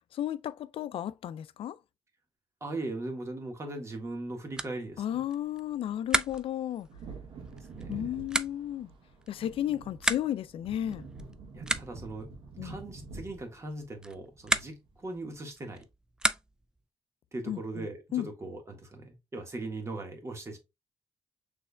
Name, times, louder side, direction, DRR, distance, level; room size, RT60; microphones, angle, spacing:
voice 1, 0.1-1.8 5.0-6.9 7.9-8.9 9.3-11.1 12.6-12.8 17.5-17.9 18.1-18.3, left 11 dB, 70° left, 0.4 m, -33 dB
voice 2, 2.6-5.2 7.8-8.0 11.5-12.3 12.6-15.8 17.3-20.6, right 2 dB, 30° right, 1.5 m, -39 dB
sound 1, 4.0-16.8, right 1 dB, 10° right, 0.4 m, -36 dB
Wind / Thunder, 6.8-15.0 15.3-15.4, right 4 dB, 70° right, 1.4 m, -47 dB
6.2 x 3.3 x 2.2 m
cardioid pair, 110°, 10 cm